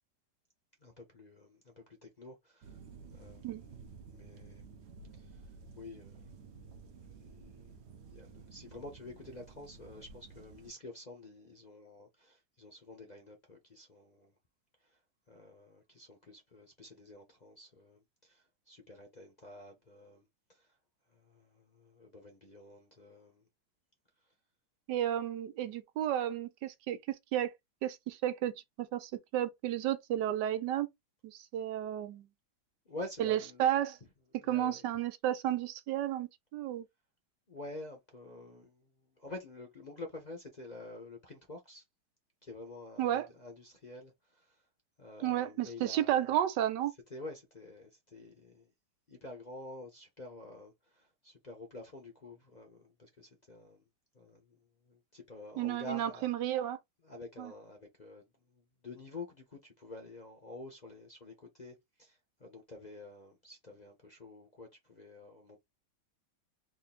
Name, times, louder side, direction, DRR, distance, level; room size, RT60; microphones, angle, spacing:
voice 1, 0.8-2.8 3.1-3.7 4.1-4.7 5.1-5.4 5.8-6.2 7.1-7.7 8.1-14.3 15.3-20.2 20.5-20.7 21.1-23.4 32.9-33.7 34.4-34.9 37.5-41.8 42.4-44.6 45.0-46.3 47.1-48.7 49.1-53.8 54.1-54.6 54.8-56.3 57.0-65.6, left 2 dB, 35° left, 0.7 m, -49 dB
sound 1, 2.6-10.7, right 5 dB, 55° right, 0.8 m, -53 dB
voice 2, 24.9-27.0 27.3-27.5 27.8-28.5 28.8-30.9 31.2-32.3 33.2-34.0 34.5-36.9 43.0-43.3 45.2-46.9 55.6-56.8 57.4-57.5, right 11 dB, 80° right, 1.3 m, -32 dB
3.7 x 2.5 x 4.1 m
omnidirectional pair, 1.9 m